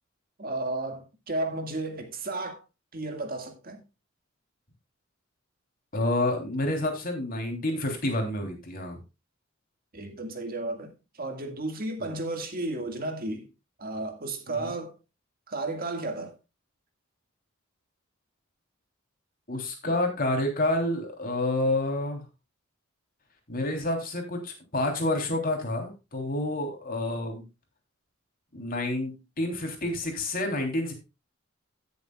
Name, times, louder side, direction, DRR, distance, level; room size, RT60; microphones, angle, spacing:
voice 1, 0.4-2.6 2.9-3.8 9.9-13.5 13.8-14.9 15.5-16.4, right 2 dB, 45° right, 1.9 m, -33 dB
voice 2, 5.9-9.0 12.0-12.1 14.5-14.7 19.5-22.2 23.5-27.4 28.5-30.9, left 1 dB, 45° left, 3.2 m, -29 dB
17.0 x 7.1 x 2.3 m
head